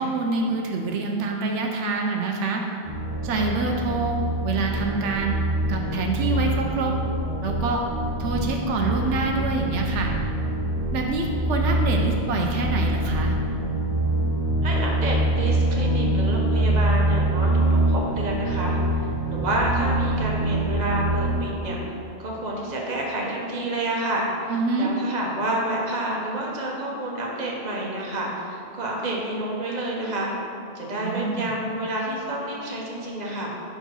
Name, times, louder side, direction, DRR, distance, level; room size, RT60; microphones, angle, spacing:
voice 1, 0.0-2.6 3.2-4.2 4.4-5.4 5.7-6.9 7.4-7.9 8.2-10.1 10.9-13.3 24.5-24.9 31.0-31.5, right 3 dB, 85° right, 1 dB, 0.9 m, -26 dB
sound 1, 2.8-21.4, right 1 dB, 10° right, 1.1 m, -24 dB
voice 2, 14.6-21.8 22.2-30.3 30.7-33.5, right 1 dB, 40° right, -3 dB, 1.1 m, -29 dB
5.5 x 4.6 x 5.6 m, 2.7 s
omnidirectional pair, 1.2 m